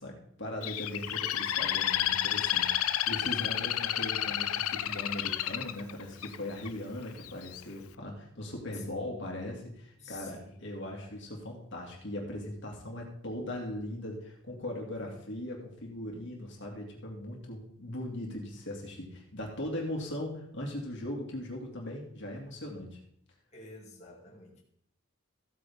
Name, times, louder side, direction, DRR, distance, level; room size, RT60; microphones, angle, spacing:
voice 1, 0.0-23.0, left 1 dB, 55° left, 0 dB, 2.3 m, -39 dB
Bird, 0.6-6.7 7.2-7.6, left 12 dB, 75° left, 0.5 m, -31 dB
voice 2, 8.7-9.4 10.0-11.2 15.0-15.2 23.5-24.6, left 3 dB, 30° left, -3 dB, 2.3 m, -51 dB
14.5 x 8.9 x 3.6 m, 0.69 s
head